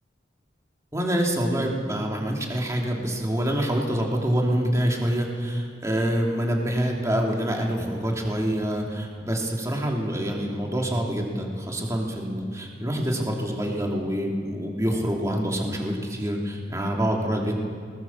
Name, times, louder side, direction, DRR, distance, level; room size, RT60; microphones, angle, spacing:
voice 1, 0.9-17.5, equal, 20° right, 0 dB, 2.9 m, -26 dB
19.5 x 19.0 x 7.2 m, 2.2 s
head